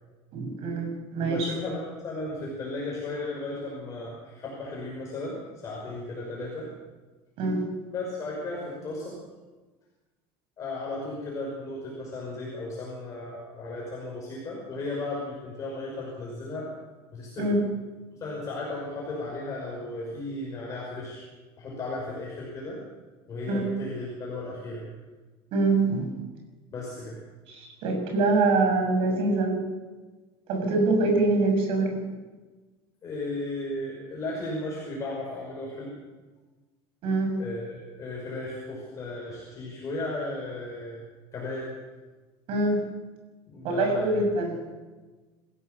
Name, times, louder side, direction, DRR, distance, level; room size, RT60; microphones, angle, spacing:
voice 1, 0.3-1.5 7.4-7.6 17.4-17.6 23.5-23.7 25.5-26.1 27.5-29.6 30.5-32.0 37.0-37.4 42.5-42.9 43.6-44.6, right 2 dB, 50° right, 3 dB, 7.0 m, -24 dB
voice 2, 1.2-6.7 7.9-9.2 10.6-16.7 17.1-17.5 18.2-21.2 21.6-22.8 23.3-24.9 26.7-27.2 33.0-35.9 37.4-41.0 41.3-41.7 43.5-44.2, left 2 dB, 25° left, -3 dB, 5.8 m, -35 dB
27.5 x 16.0 x 6.9 m, 1.3 s
cardioid pair, 160°, 12 cm